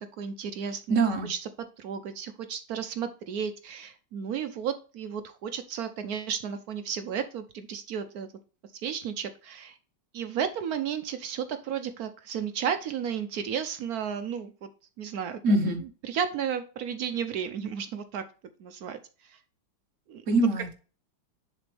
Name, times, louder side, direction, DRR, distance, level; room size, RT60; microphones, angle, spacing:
voice 1, 0.0-1.0 1.2-1.4 1.8-8.3 8.7-9.8 10.1-14.7 15.0-15.4 16.0-18.2 18.6-19.4 20.1-20.2, right 8 dB, 70° right, 9 dB, 0.9 m, -33 dB
voice 2, 0.9-1.3 15.4-15.8 20.3-20.7, right 2 dB, 45° right, 4 dB, 1.3 m, -23 dB
7.4 x 6.0 x 3.3 m, 0.36 s
omnidirectional pair, 2.1 m